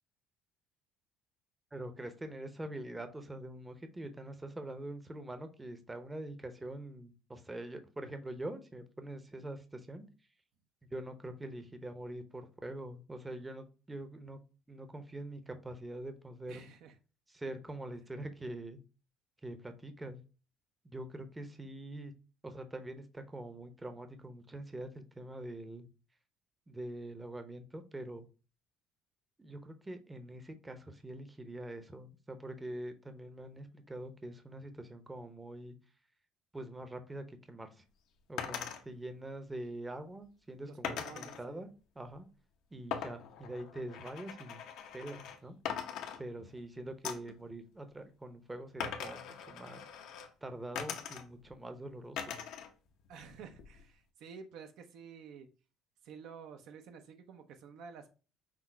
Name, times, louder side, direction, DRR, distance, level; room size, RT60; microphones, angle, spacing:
voice 1, 1.7-10.0 10.9-14.4 14.7-16.7 17.3-18.8 19.4-20.2 20.8-22.1 22.4-25.9 26.7-28.3 29.4-35.8 36.5-37.7 38.3-41.7 42.0-42.3 42.7-44.6 44.9-45.5 46.2-49.8 50.4-52.3, right 1 dB, 15° right, 0.7 m, -44 dB
voice 2, 16.5-17.0 40.6-41.7 53.1-55.5 56.0-58.1, right 6 dB, 70° right, 0.7 m, -51 dB
sound 1, 38.4-38.8 40.8-41.4 42.9-45.4 45.6-46.6 47.0-47.4 48.8-50.3 50.7-51.5 52.2-52.7 53.0-53.8, left 8 dB, 75° left, 0.8 m, -41 dB
6.0 x 2.0 x 4.4 m
cardioid pair, 100°, 0 cm